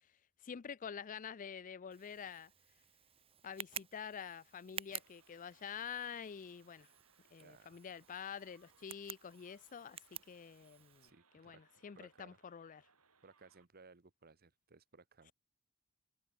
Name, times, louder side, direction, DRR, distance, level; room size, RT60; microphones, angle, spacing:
voice 1, 0.4-2.5 3.4-6.9 7.3-12.9, left 7 dB, 35° left, 0.4 m, -47 dB
Tick, 1.9-11.1, right 8 dB, 25° right, 1.0 m, -52 dB
sound 1, 4.9-13.7, right 5 dB, 90° right, 6.7 m, -73 dB
voice 2, 7.4-7.8 11.0-11.6 11.9-12.4 13.2-15.3, right 4 dB, 45° right, 1.2 m, -61 dB
head